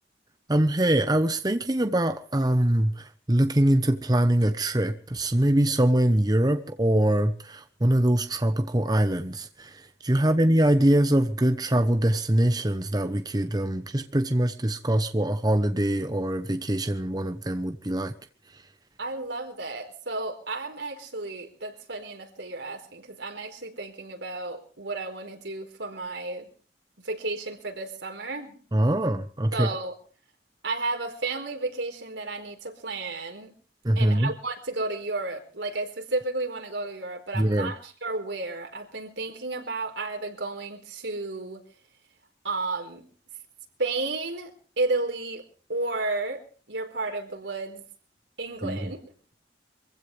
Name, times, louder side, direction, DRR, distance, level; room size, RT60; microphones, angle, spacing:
voice 1, 0.5-18.1 28.7-29.7 33.8-34.3 37.3-37.7 48.6-48.9, right 1 dB, 20° right, 0.9 m, -23 dB
voice 2, 19.0-26.5 27.0-28.6 29.5-29.9 30.6-33.6 34.0-41.6 42.4-43.1 43.8-44.5 44.8-45.4 45.7-46.4 46.7-47.8 48.4-49.0, right 3 dB, 80° right, 4.4 m, -32 dB
25.0 x 16.0 x 3.4 m
head